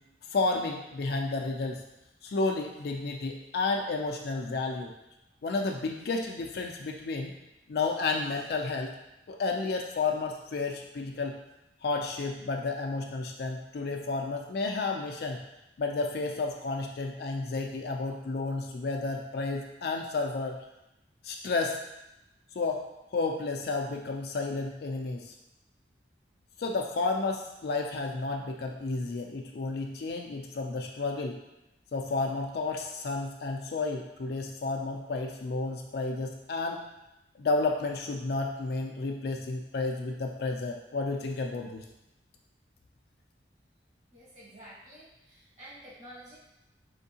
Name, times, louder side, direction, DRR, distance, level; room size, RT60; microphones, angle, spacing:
voice 1, 0.3-1.8 2.2-4.9 5.4-7.3 7.7-8.9 9.3-11.4 11.8-15.4 15.8-20.6 21.2-21.8 22.5-22.8 23.1-25.3 26.6-31.4 31.9-36.8 37.4-41.8, left 3 dB, 60° left, 2 dB, 0.4 m, -31 dB
voice 2, 44.1-46.4, equal, 45° right, -8 dB, 1.5 m, -50 dB
4.5 x 3.4 x 2.8 m, 0.91 s
head